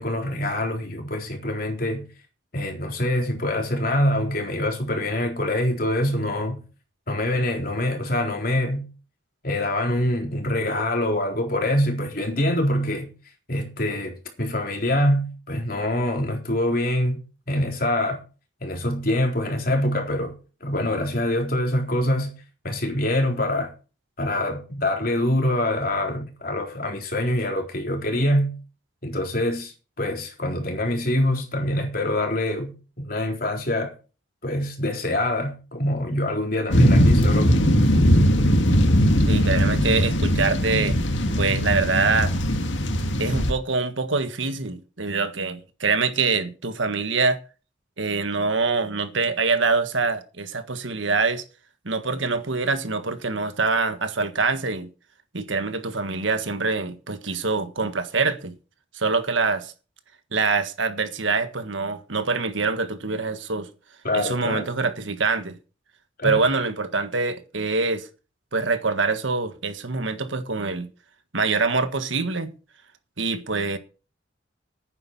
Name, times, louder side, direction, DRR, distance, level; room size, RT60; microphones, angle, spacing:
voice 1, 0.0-2.0 2.5-6.6 7.1-8.9 9.4-13.1 13.5-18.2 18.6-20.3 20.6-22.3 22.6-23.7 24.2-28.5 29.0-33.9 34.4-37.5 64.0-64.7 66.2-66.4, left 1 dB, 50° left, 3.9 m, -25 dB
sound 1, 36.7-43.5, equal, 75° left, 1.9 m, -19 dB
voice 2, 39.3-41.0 41.4-42.3 43.2-47.4 48.0-51.4 51.8-54.9 55.3-58.5 58.9-59.7 60.3-63.7 64.1-65.6 66.2-68.1 68.5-70.9 71.3-72.5 73.2-73.8, right 4 dB, 80° right, 1.6 m, -24 dB
11.0 x 9.5 x 5.9 m
head